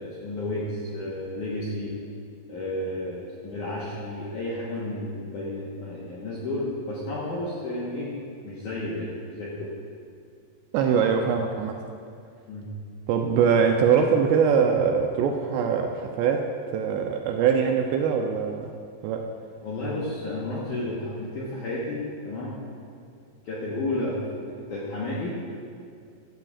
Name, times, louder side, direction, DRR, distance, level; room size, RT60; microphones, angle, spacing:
voice 1, 0.0-2.0 2.5-8.1 8.4-9.7 12.5-12.7 19.6-22.6 23.4-25.4, left 1 dB, 75° left, -6 dB, 1.8 m, -32 dB
voice 2, 10.7-11.8 13.1-18.7 19.0-19.3, right 6 dB, 85° right, 3 dB, 2.5 m, -23 dB
15.0 x 13.5 x 2.4 m, 2.3 s
omnidirectional pair, 5.4 m